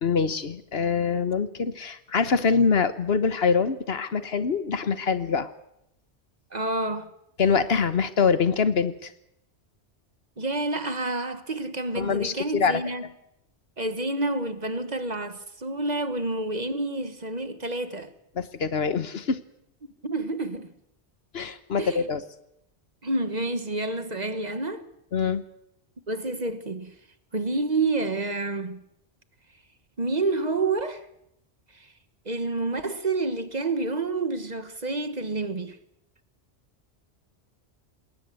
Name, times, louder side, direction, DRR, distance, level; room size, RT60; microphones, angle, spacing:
voice 1, 0.0-5.5 7.4-9.1 11.9-12.8 18.3-19.4 21.3-22.2 25.1-25.4, left 5 dB, 60° left, 1.3 m, -24 dB
voice 2, 6.5-7.1 10.4-13.0 13.8-18.1 20.0-20.7 21.8-22.1 23.0-24.8 26.1-26.9 27.3-28.8 30.0-31.0 32.2-35.8, right 2 dB, 40° right, 1.3 m, -28 dB
20.5 x 18.5 x 7.7 m
omnidirectional pair, 1.2 m